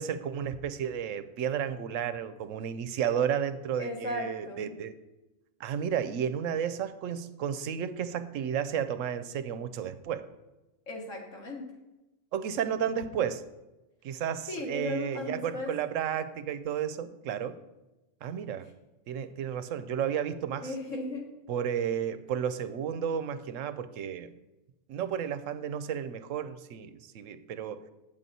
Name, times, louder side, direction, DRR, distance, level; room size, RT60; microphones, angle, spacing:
voice 1, 0.0-4.9 5.6-10.3 12.3-13.4 14.0-17.6 18.2-18.7 19.1-20.7 21.5-24.3 24.9-27.8, right 8 dB, 90° right, 12 dB, 1.0 m, -32 dB
voice 2, 3.8-4.8 10.9-11.7 14.5-15.7 20.6-21.3, left 2 dB, 80° left, 0 dB, 1.9 m, -36 dB
9.1 x 7.2 x 4.1 m, 1.0 s
omnidirectional pair, 1.3 m